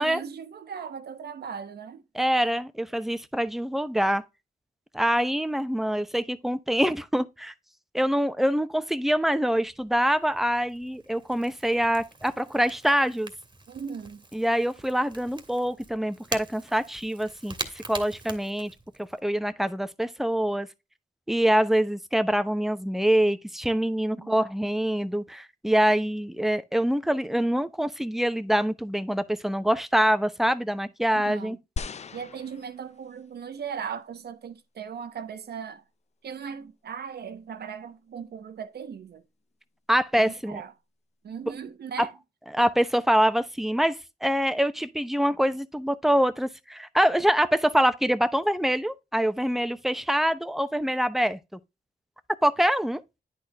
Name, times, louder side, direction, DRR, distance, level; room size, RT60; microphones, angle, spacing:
voice 1, 0.0-2.0 13.7-14.2 24.1-24.4 31.1-31.6 32.1-35.8 36.2-39.2 40.1-40.7 41.2-42.1, right 7 dB, 80° right, 1.0 m, -38 dB
voice 2, 2.1-4.2 4.9-7.5 7.9-13.3 14.3-18.7 19.0-20.7 21.3-31.6 39.9-40.6 42.0-42.1 42.5-51.4 52.4-53.0, equal, ahead, 0.8 m, -25 dB
Crackle / Crack, 9.7-19.2, right 3 dB, 25° right, 1.6 m, -43 dB
sound 1, 31.8-33.3 34.0-34.1, left 5 dB, 40° left, 0.5 m, -38 dB
10.0 x 4.3 x 3.4 m
cardioid pair, 80°, 17 cm